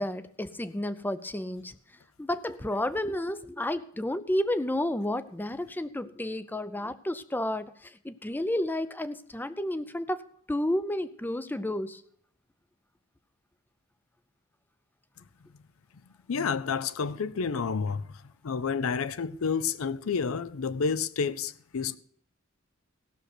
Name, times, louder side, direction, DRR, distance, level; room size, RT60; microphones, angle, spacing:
voice 1, 0.0-1.7 2.2-10.2 10.5-12.0, left 1 dB, 10° left, 0.5 m, -31 dB
voice 2, 16.3-22.0, left 5 dB, 75° left, 0.5 m, -30 dB
16.0 x 6.6 x 5.9 m
head